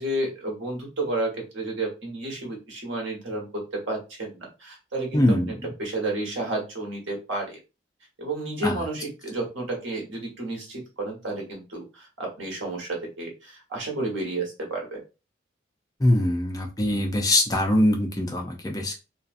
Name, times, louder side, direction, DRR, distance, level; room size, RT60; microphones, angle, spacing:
voice 1, 0.0-3.6 3.9-7.6 8.2-15.0, right 2 dB, 80° right, 0 dB, 1.2 m, -31 dB
voice 2, 5.1-5.5 8.6-8.8 16.0-19.0, left 1 dB, 20° left, 2 dB, 0.4 m, -22 dB
2.7 x 2.4 x 2.5 m, 0.28 s
head